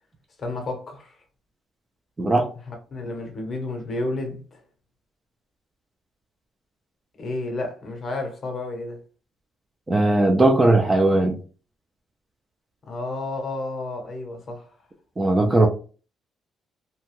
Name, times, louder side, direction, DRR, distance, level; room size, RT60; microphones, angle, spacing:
voice 1, 0.4-1.1 2.7-4.6 7.2-9.0 12.9-14.7, left 2 dB, 35° left, 0.7 m, -31 dB
voice 2, 9.9-11.4 15.2-15.7, right 2 dB, 15° right, 0.3 m, -18 dB
2.7 x 2.2 x 3.0 m
cardioid pair, 155°, 0 cm